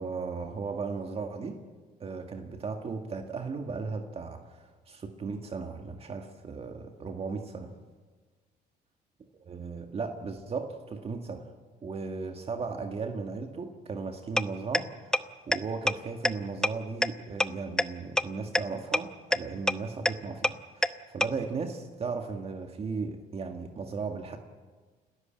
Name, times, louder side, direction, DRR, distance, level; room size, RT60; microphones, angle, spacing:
voice 1, 0.0-1.6 2.0-4.6 4.9-7.7 9.4-11.5 11.8-14.9 15.5-24.4, right 4 dB, 35° right, 4 dB, 1.8 m, -36 dB
sound 1, 14.4-14.5 14.7-14.8 15.1-15.2 15.5-15.6 15.9-16.0 16.3-16.4 16.6-16.7 17.0-17.1 17.4-17.5 17.8-17.9 18.2-18.3 18.6-18.7 18.9-19.0 19.3-19.4 19.7-19.8 20.1-20.2 20.4-20.5 20.8-20.9 21.2-21.3, left 1 dB, 5° left, 0.8 m, -22 dB
29.0 x 13.5 x 8.9 m, 1.4 s
cardioid pair, 110°, 17 cm